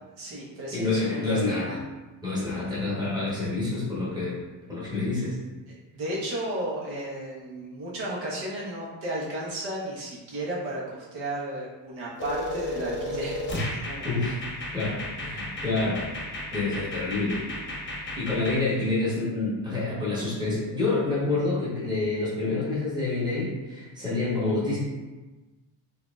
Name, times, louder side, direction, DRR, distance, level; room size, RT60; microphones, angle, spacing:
voice 1, 0.2-1.6 5.7-10.8 11.1-13.4 13.7-14.2, right 1 dB, 75° right, -6 dB, 1.2 m, -33 dB
voice 2, 0.7-1.8 2.2-4.4 4.7-5.4 14.0-14.4 14.7-16.1 16.5-17.4 17.9-24.8, left 3 dB, 10° right, -8 dB, 1.2 m, -28 dB
sound 1, 12.2-18.6, left 1 dB, 25° left, 0.8 m, -33 dB
4.5 x 2.7 x 2.4 m, 1.2 s
cardioid pair, 145°, 46 cm